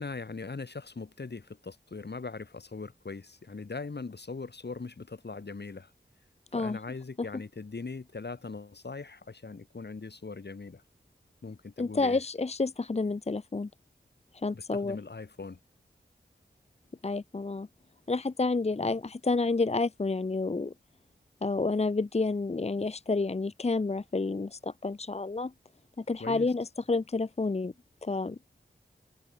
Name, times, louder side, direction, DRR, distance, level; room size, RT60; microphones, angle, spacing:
voice 1, 0.0-5.9 6.5-10.8 11.4-12.2 14.5-15.6 26.2-26.5, left 4 dB, 65° left, 2.6 m, -40 dB
voice 2, 11.8-13.7 14.3-15.0 17.0-17.7 18.1-20.7 21.4-25.5 26.0-27.7 28.0-28.4, left 3 dB, 35° left, 0.7 m, -29 dB
wide cardioid pair, 55°, 19 cm